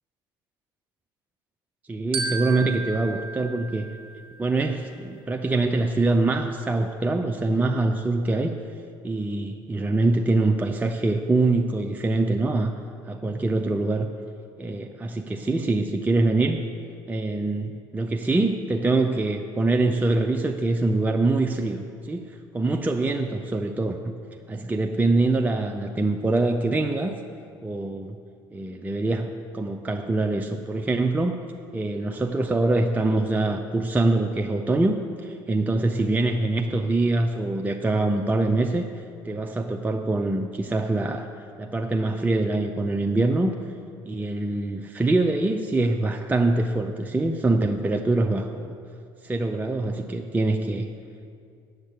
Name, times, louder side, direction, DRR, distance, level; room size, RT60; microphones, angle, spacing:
voice 1, 1.9-3.9 4.4-8.6 9.0-12.7 13.1-14.1 14.6-16.6 17.1-24.1 24.5-27.2 27.6-28.2 28.5-31.5 31.7-41.3 41.6-43.6 44.1-48.7 49.2-50.9, right 2 dB, 15° right, 4 dB, 0.6 m, -24 dB
Glockenspiel, 2.1-4.6, right 4 dB, 50° right, 1.1 m, -33 dB
8.0 x 7.3 x 8.0 m, 2.3 s
hypercardioid pair, 60°, 12 cm